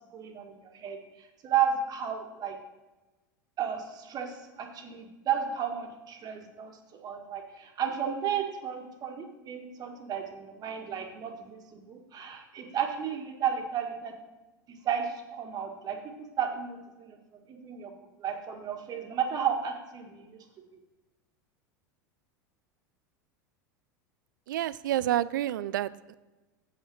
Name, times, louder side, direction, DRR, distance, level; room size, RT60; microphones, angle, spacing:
voice 1, 0.1-2.6 3.6-14.1 14.7-17.9 18.2-20.4, right 8 dB, 40° right, 3 dB, 1.6 m, -33 dB
voice 2, 24.5-26.2, right 13 dB, 75° right, 18 dB, 0.4 m, -29 dB
8.1 x 5.7 x 6.3 m, 1.1 s
hypercardioid pair, 90°, 11 cm